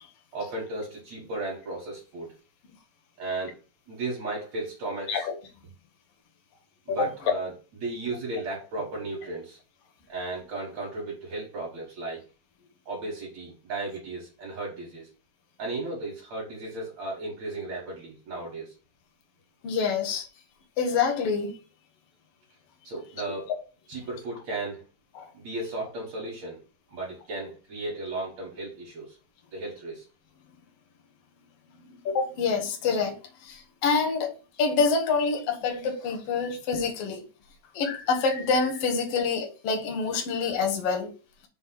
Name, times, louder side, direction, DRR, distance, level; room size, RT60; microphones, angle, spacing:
voice 1, 0.3-2.3 3.2-3.5 3.9-5.3 6.9-7.5 7.8-9.6 10.1-12.2 12.9-15.1 15.6-18.7 22.8-23.5 23.9-24.8 25.3-26.6 26.9-29.2 29.5-30.0 40.2-40.3, right 2 dB, 55° right, 2.6 m, -35 dB
voice 2, 19.6-20.3 20.8-21.5 25.1-25.3 32.0-37.2 37.7-41.1, left 5 dB, 85° left, 1.3 m, -26 dB
6.1 x 3.4 x 5.9 m
omnidirectional pair, 4.5 m